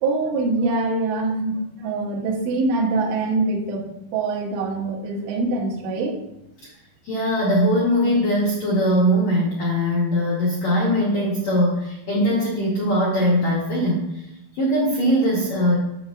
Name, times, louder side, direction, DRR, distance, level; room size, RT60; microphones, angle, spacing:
voice 1, 0.0-3.9 4.1-6.2, right 3 dB, 80° right, -2 dB, 3.3 m, -24 dB
voice 2, 7.0-14.2 14.5-15.7, equal, 85° left, -4 dB, 1.5 m, -21 dB
8.6 x 7.2 x 2.4 m, 0.86 s
omnidirectional pair, 5.2 m